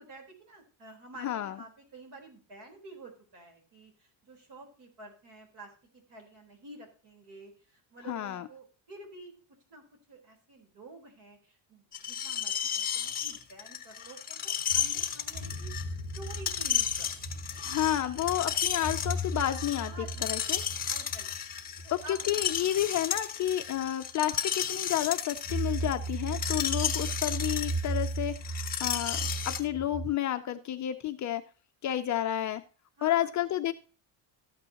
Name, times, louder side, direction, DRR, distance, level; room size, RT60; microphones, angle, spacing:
voice 1, 0.0-9.3 9.7-17.7 19.8-21.3 21.8-22.5 33.0-33.5, right 2 dB, 55° right, 2 dB, 4.0 m, -50 dB
voice 2, 1.2-1.6 8.1-8.5 17.6-19.9 20.2-20.6 22.1-31.4 31.8-32.6 33.0-33.7, left 12 dB, 40° left, 8 dB, 0.4 m, -31 dB
Screech, 11.9-29.6, left 8 dB, 20° left, 0.9 m, -33 dB
sound 1, 14.7-23.2 23.6-23.7 25.4-30.1, right 2 dB, 25° right, 3.0 m, -37 dB
13.5 x 8.8 x 2.9 m, 0.37 s
cardioid pair, 170°, 47 cm